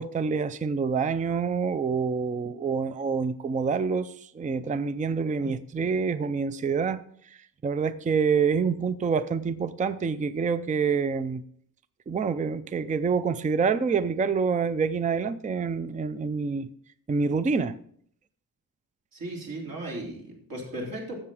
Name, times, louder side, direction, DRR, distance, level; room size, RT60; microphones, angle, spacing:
voice 1, 0.0-7.0 7.6-11.4 12.1-16.7 17.1-17.8, right 5 dB, 20° right, 0.4 m, -27 dB
voice 2, 19.1-21.2, right 1 dB, 60° right, 3.5 m, -36 dB
13.0 x 7.7 x 4.8 m
wide cardioid pair, 175°, 38 cm